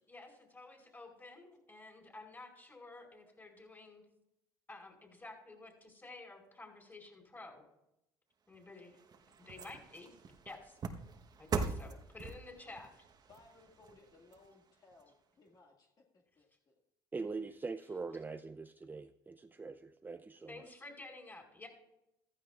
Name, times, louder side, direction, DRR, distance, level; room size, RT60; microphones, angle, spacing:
voice 1, 0.1-4.0 4.7-7.6 8.5-8.9 9.4-10.1 10.4-10.8 11.4-12.9 20.5-21.7, left 2 dB, 20° left, 4.9 m, -52 dB
sound 1, 8.5-15.0 15.5-15.6, right 4 dB, 40° right, 1.1 m, -43 dB
voice 2, 13.3-16.8, left 3 dB, 40° left, 2.0 m, -63 dB
voice 3, 17.1-20.7, right 4 dB, 20° right, 0.5 m, -43 dB
15.0 x 14.0 x 2.5 m
supercardioid pair, 85°, 10 cm